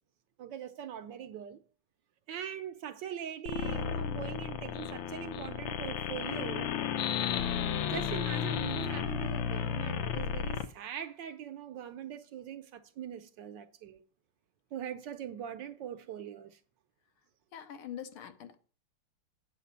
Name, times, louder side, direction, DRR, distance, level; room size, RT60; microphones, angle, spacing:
voice 1, 0.4-1.6 2.3-6.7 7.9-14.0 14.7-16.6, right 9 dB, 70° right, 1.2 m, -41 dB
sound 1, 3.5-10.7, left 8 dB, 70° left, 1.3 m, -33 dB
voice 2, 17.5-18.5, left 9 dB, 85° left, 1.8 m, -43 dB
8.5 x 5.0 x 6.9 m
omnidirectional pair, 2.3 m